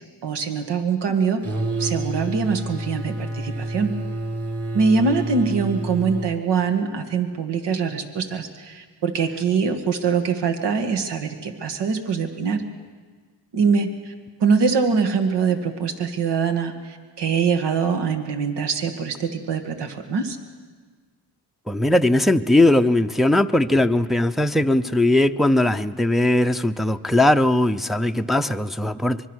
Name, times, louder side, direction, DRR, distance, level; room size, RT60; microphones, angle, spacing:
voice 1, 0.2-1.4 1.8-4.0 4.7-12.6 13.5-14.1 14.4-20.4, right 5 dB, 75° right, 6 dB, 2.0 m, -23 dB
sound 1, 1.4-6.4, right 2 dB, 35° right, 3.5 m, -29 dB
voice 2, 21.7-29.2, left 1 dB, ahead, 6 dB, 0.6 m, -19 dB
24.5 x 23.0 x 6.4 m, 1.5 s
cardioid pair, 90°, 42 cm